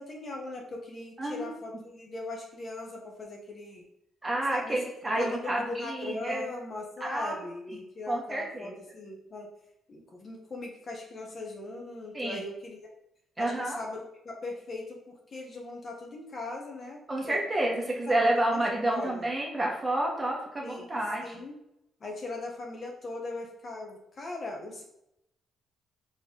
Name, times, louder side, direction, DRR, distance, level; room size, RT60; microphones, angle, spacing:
voice 1, 0.0-3.8 4.5-4.8 5.0-9.5 9.9-12.9 13.4-17.4 18.1-19.3 20.6-21.6 22.0-24.8, left 2 dB, 40° left, 1 dB, 1.0 m, -40 dB
voice 2, 1.2-1.5 4.2-6.5 7.0-7.4 8.1-8.8 12.1-12.4 13.4-13.8 17.1-21.4, right 1 dB, 20° right, -1 dB, 1.3 m, -29 dB
4.3 x 3.2 x 3.8 m, 0.80 s
cardioid pair, 90°, 0 cm